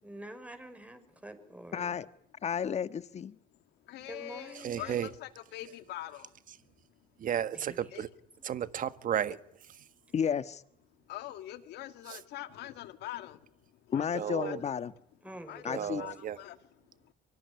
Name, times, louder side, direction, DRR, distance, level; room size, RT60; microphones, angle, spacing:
voice 1, 0.0-2.0 4.1-5.1 7.5-7.8 15.2-16.0, right 1 dB, 10° right, 5.8 m, -46 dB
voice 2, 1.7-2.1 2.4-3.4 10.1-10.6 13.9-14.9 15.6-16.0, left 7 dB, 40° left, 1.5 m, -32 dB
voice 3, 3.8-6.3 7.9-8.0 11.1-14.6 15.5-16.6 16.9-17.1, left 14 dB, 80° left, 2.2 m, -44 dB
voice 4, 4.5-5.1 7.2-8.1 8.4-9.4 12.1-12.2 14.1-14.6 15.7-16.4, right 10 dB, 55° right, 1.6 m, -33 dB
25.0 x 23.5 x 9.8 m
cardioid pair, 110°, 17 cm